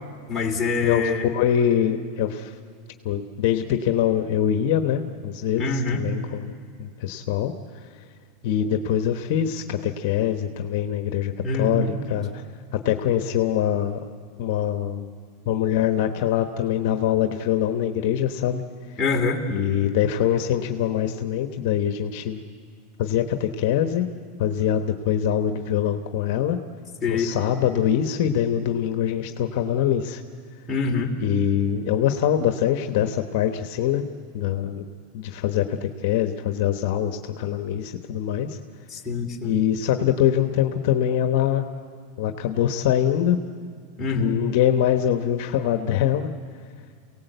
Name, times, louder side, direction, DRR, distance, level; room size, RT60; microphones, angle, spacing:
voice 1, 0.3-1.3 5.6-6.0 11.4-11.9 19.0-19.4 27.0-27.3 30.7-31.1 38.9-39.5 44.0-44.4, left 4 dB, 15° left, -1 dB, 2.9 m, -25 dB
voice 2, 0.8-2.5 3.0-6.5 6.8-7.5 8.4-12.4 12.7-14.0 14.4-15.1 15.4-18.6 19.5-22.4 23.0-24.1 24.4-26.6 27.1-30.2 31.2-34.0 34.3-34.8 35.1-38.6 39.4-41.7 42.2-43.4 44.1-46.3, left 10 dB, 60° left, 7 dB, 1.1 m, -23 dB
28.0 x 18.0 x 8.1 m, 2.1 s
supercardioid pair, 135°, 0 cm